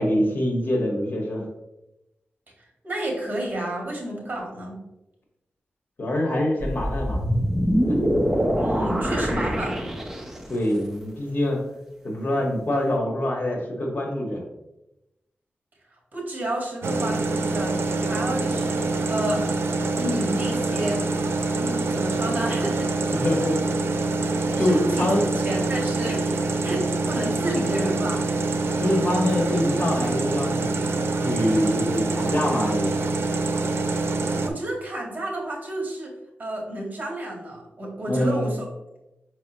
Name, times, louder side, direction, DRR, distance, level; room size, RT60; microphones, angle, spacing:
voice 1, 0.0-1.4 6.0-7.2 7.9-8.3 10.5-11.6 12.0-14.4 23.1-23.6 24.6-25.3 28.8-33.1 38.1-38.5, left 1 dB, 50° left, 0 dB, 1.7 m, -25 dB
voice 2, 2.8-4.8 8.5-9.8 16.1-19.4 20.0-21.0 21.5-23.0 24.6-28.2 34.4-36.1 36.4-38.6, right 1 dB, 40° right, -1 dB, 1.9 m, -30 dB
sound 1, 6.6-10.6, equal, 5° right, 0.8 m, -24 dB
sound 2, 16.8-34.5, right 3 dB, 75° right, 0.6 m, -25 dB
5.8 x 5.4 x 3.0 m, 0.92 s
wide cardioid pair, 95°, 4 cm